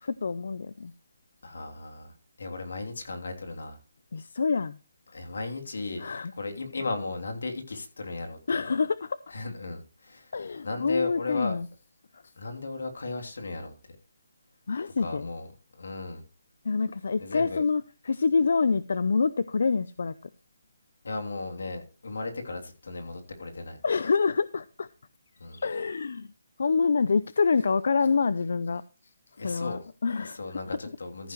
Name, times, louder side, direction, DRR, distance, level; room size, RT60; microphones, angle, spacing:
voice 1, 0.0-0.9 4.1-4.8 6.0-6.3 8.5-9.2 10.3-11.7 12.1-12.2 14.7-15.3 16.6-20.1 23.8-24.9 25.5-26.3 26.6-28.8 29.4-30.6, left 4 dB, 55° left, 16 dB, 0.5 m, -26 dB
voice 2, 1.4-3.8 5.1-6.1 6.4-8.4 9.3-10.3 10.6-11.6 12.4-13.7 15.0-15.5 15.8-16.2 17.2-17.6 21.0-23.8 25.4-25.6 29.4-29.8 30.3-31.3, left 3 dB, 80° left, 4 dB, 3.0 m, -35 dB
14.5 x 9.3 x 3.1 m, 0.33 s
hypercardioid pair, 175°, 0 cm